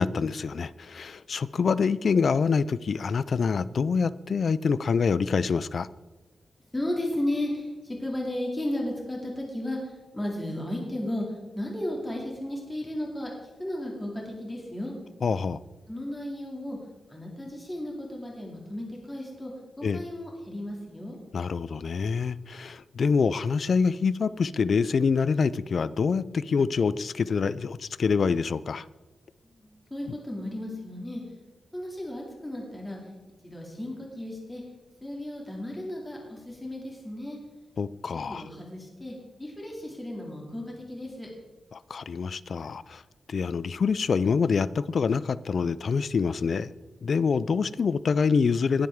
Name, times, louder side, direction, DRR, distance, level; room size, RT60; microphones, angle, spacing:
voice 1, 0.0-5.9 15.2-15.6 19.8-20.0 21.3-28.8 37.8-38.5 41.7-43.0 43.3-46.7 47.0-48.9, left 5 dB, 55° left, 17 dB, 0.4 m, -26 dB
voice 2, 6.7-13.3 13.6-14.9 15.9-16.8 17.1-19.5 19.8-21.2 29.6-31.2 31.7-33.0 33.4-34.6 35.0-37.4 38.3-41.3, left 1 dB, 15° left, -2 dB, 2.5 m, -34 dB
20.0 x 7.6 x 3.6 m, 1.1 s
wide cardioid pair, 145°, 0 cm